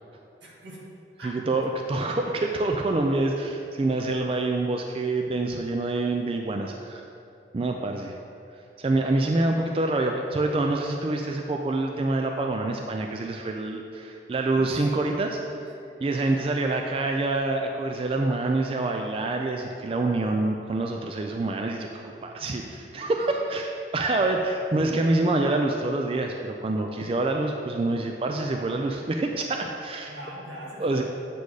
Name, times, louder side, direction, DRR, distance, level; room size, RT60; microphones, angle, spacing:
voice 1, 0.4-0.8 1.2-1.4 14.5-14.7 15.3-15.6 16.2-16.4 22.4-23.0 30.1-31.0, equal, 90° right, -4 dB, 1.6 m, -43 dB
voice 2, 1.2-7.1 7.5-8.2 8.8-15.4 16.0-30.1 30.8-31.0, right 2 dB, 30° right, 3 dB, 0.3 m, -26 dB
8.2 x 4.3 x 4.8 m, 2.6 s
head